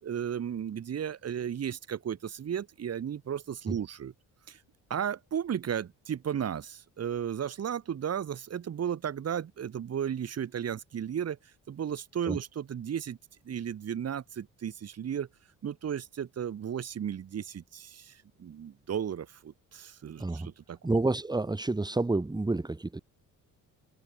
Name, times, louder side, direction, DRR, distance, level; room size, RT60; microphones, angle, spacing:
voice 1, 0.0-4.1 4.5-4.6 4.9-11.4 11.7-13.2 13.4-15.3 15.6-20.8, right 8 dB, 45° right, 3.1 m, -34 dB
voice 2, 20.8-23.0, right 2 dB, 10° right, 2.3 m, -29 dB
cardioid pair, 120°, 33 cm